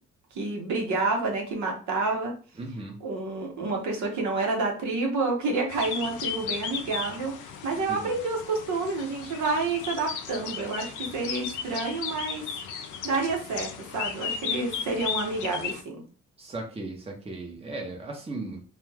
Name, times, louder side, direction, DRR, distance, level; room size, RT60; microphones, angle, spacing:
voice 1, 0.3-2.3 3.0-12.5 13.0-16.0, right 3 dB, 70° right, 1 dB, 0.9 m, -29 dB
voice 2, 2.6-3.0 7.9-8.1 16.4-18.6, right 2 dB, 20° right, 1 dB, 0.8 m, -36 dB
sound 1, 5.7-15.8, left 7 dB, 80° left, 0.5 m, -35 dB
2.3 x 2.2 x 3.3 m, 0.38 s
cardioid pair, 90°, 30 cm